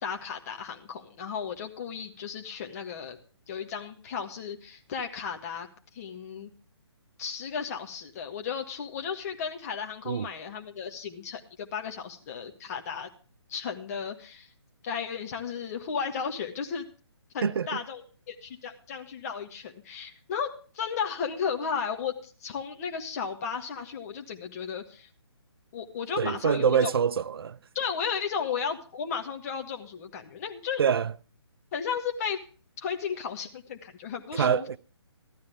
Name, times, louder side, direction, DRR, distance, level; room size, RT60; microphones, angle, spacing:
voice 1, 0.0-3.2 3.5-5.7 5.9-6.5 7.2-13.1 13.5-14.5 14.8-16.8 17.3-18.0 18.3-25.1 25.7-26.9 27.7-30.8 31.7-32.4 32.8-34.7, left 6 dB, 35° left, 1.6 m, -34 dB
voice 2, 26.2-27.6 30.8-31.1 34.3-34.8, right 7 dB, 60° right, 0.5 m, -25 dB
15.0 x 12.0 x 3.5 m
figure-of-eight pair, 150°, 15 cm